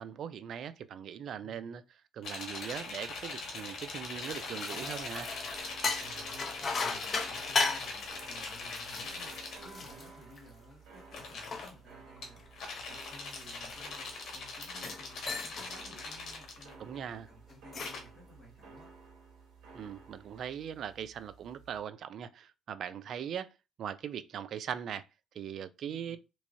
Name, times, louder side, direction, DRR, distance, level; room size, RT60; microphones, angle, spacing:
voice 1, 0.0-1.8 2.1-5.3 16.8-17.3 19.7-23.5 23.8-25.1 25.3-26.2, right 8 dB, 55° right, 0.3 m, -40 dB
voice 2, 1.4-1.7 6.0-18.9 25.8-26.2, equal, 5° left, 1.8 m, -56 dB
sound 1, 2.2-9.6 11.0-11.7 12.2-17.0 17.8-18.0, left 3 dB, 60° left, 1.2 m, -41 dB
sound 2, 3.9-10.7 11.2-14.2 14.7-15.0 15.3-15.7 16.1-16.4 17.5-18.1, left 4 dB, 35° left, 0.6 m, -37 dB
sound 3, 4.7-21.8, right 4 dB, 75° right, 1.3 m, -54 dB
3.4 x 3.1 x 2.6 m
cardioid pair, 125°, 0 cm